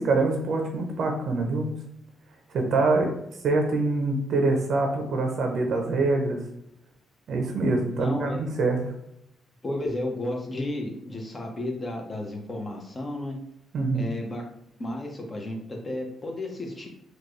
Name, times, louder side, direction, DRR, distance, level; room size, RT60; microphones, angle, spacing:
voice 1, 0.0-1.7 2.5-3.1 3.4-6.4 7.3-8.8 13.7-14.1, right 3 dB, 65° right, 2 dB, 0.7 m, -25 dB
voice 2, 7.9-8.4 9.6-13.4 13.9-14.4 14.8-16.9, left 1 dB, 30° left, 0 dB, 1.1 m, -32 dB
4.4 x 2.5 x 3.1 m, 0.78 s
cardioid pair, 90°, 0 cm